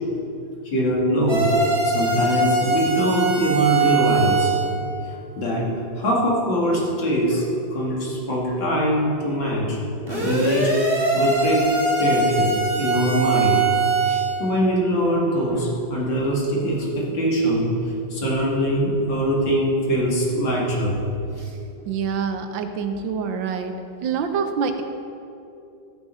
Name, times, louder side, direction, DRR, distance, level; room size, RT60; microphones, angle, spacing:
voice 1, 0.6-1.5 1.8-4.5 5.1-5.7 6.0-7.4 7.7-9.8 10.1-11.7 12.0-13.6 14.1-17.7 18.1-21.0, equal, 75° left, -3 dB, 2.9 m, -22 dB
sound 1, 1.3-4.7 10.1-14.4, right 3 dB, 30° right, 2.3 m, -22 dB
voice 2, 21.9-23.7 24.0-24.8, right 6 dB, 75° right, 7 dB, 1.5 m, -26 dB
13.5 x 7.0 x 5.4 m, 2.7 s
omnidirectional pair, 2.1 m